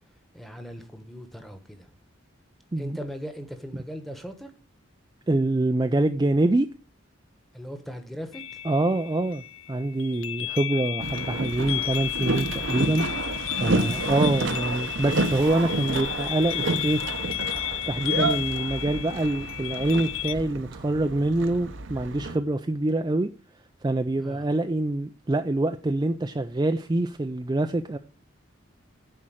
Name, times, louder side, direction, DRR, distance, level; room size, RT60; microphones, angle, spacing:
voice 1, 0.3-1.9 2.8-4.5 7.5-8.4 13.9-14.3 24.2-24.5, equal, ahead, 1.1 m, -39 dB
voice 2, 5.3-6.7 8.6-9.4 9.7-13.0 13.6-17.0 17.9-23.3 23.8-28.0, right 2 dB, 20° right, 0.4 m, -25 dB
sound 1, 8.3-20.3, left 14 dB, 85° left, 0.5 m, -33 dB
Boat Water vehicle, 11.0-22.4, right 3 dB, 70° right, 0.8 m, -30 dB
10.5 x 4.4 x 7.5 m
head